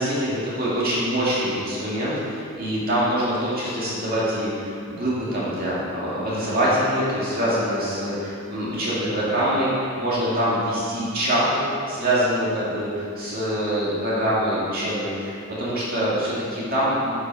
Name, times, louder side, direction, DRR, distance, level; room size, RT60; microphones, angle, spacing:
voice 1, 0.0-17.1, equal, 45° right, -8 dB, 2.2 m, -24 dB
10.0 x 6.2 x 5.5 m, 2.5 s
head